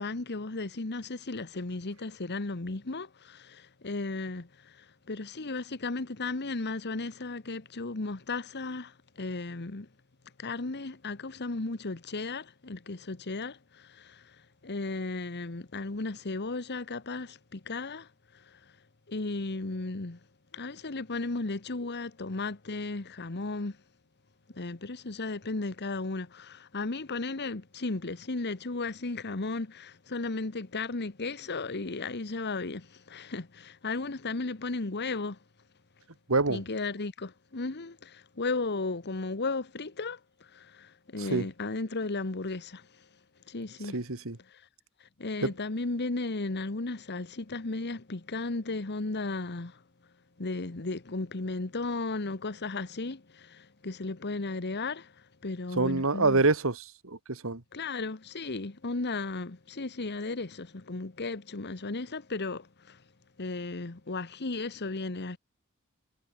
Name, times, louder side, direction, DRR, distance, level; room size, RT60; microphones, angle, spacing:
voice 1, 0.0-9.9 10.4-14.4 14.6-18.6 19.1-20.2 20.5-23.8 24.5-35.4 36.5-43.1 43.5-44.0 44.5-44.6 45.2-49.8 50.4-56.5 57.7-63.0 63.4-65.4, left 3 dB, 50° left, 1.3 m, -35 dB
voice 2, 36.3-36.6 41.3-41.5 43.9-44.4 45.4-45.5 55.8-57.6, right 3 dB, 70° right, 1.8 m, -26 dB
head